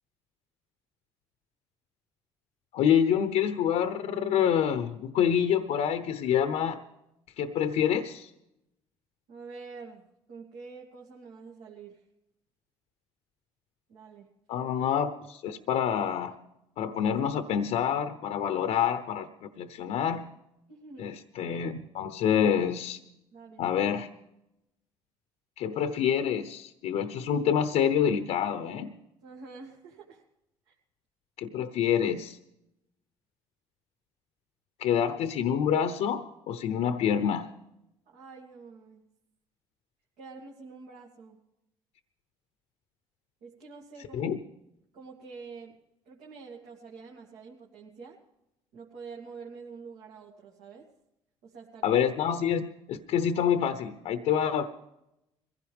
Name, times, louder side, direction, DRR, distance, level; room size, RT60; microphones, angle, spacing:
voice 1, 2.7-6.8 7.4-8.3 14.5-16.3 16.8-20.3 21.0-23.0 23.6-24.1 25.6-28.9 31.4-32.4 34.8-37.5 44.1-44.4 51.8-54.7, left 8 dB, 70° left, 9 dB, 0.9 m, -27 dB
voice 2, 9.3-12.0 13.9-14.3 20.7-21.1 23.3-23.7 29.2-30.2 30.7-30.8 38.1-39.0 40.2-41.4 43.4-44.3 44.9-45.8 46.1-48.2 48.7-50.9 51.4-51.9, right 4 dB, 80° right, -2 dB, 2.5 m, -47 dB
22.0 x 16.0 x 3.6 m, 0.87 s
supercardioid pair, 75°, 12 cm